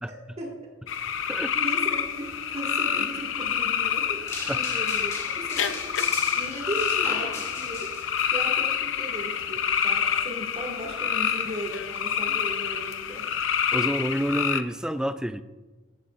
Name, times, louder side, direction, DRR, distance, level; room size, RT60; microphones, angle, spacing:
voice 1, 0.1-0.5 1.6-6.0 6.4-7.9 8.3-13.3, right 1 dB, 30° right, -1 dB, 2.1 m, -37 dB
sound 1, 0.9-14.6, left 8 dB, 70° left, 0.6 m, -27 dB
sound 2, 4.3-8.3, left 2 dB, 15° left, 2.3 m, -38 dB
voice 2, 13.7-15.4, equal, 5° right, 11 dB, 0.4 m, -28 dB
16.0 x 11.5 x 2.5 m, 1.2 s
head